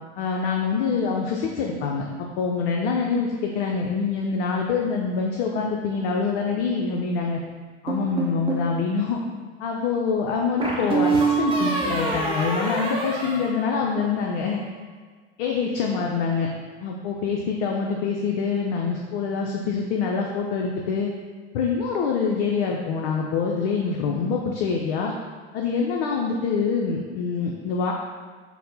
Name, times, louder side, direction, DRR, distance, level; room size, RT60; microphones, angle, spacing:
voice 1, 0.2-7.4 7.8-9.2 9.6-14.6 15.4-16.5 16.8-21.1 21.5-25.1 25.5-27.9, left 5 dB, 55° left, 0 dB, 0.5 m, -25 dB
sound 1, 7.9-8.7 10.6-14.2, right 3 dB, 15° right, 0.7 m, -25 dB
4.2 x 2.0 x 4.0 m, 1.5 s
figure-of-eight pair, 75°, 34 cm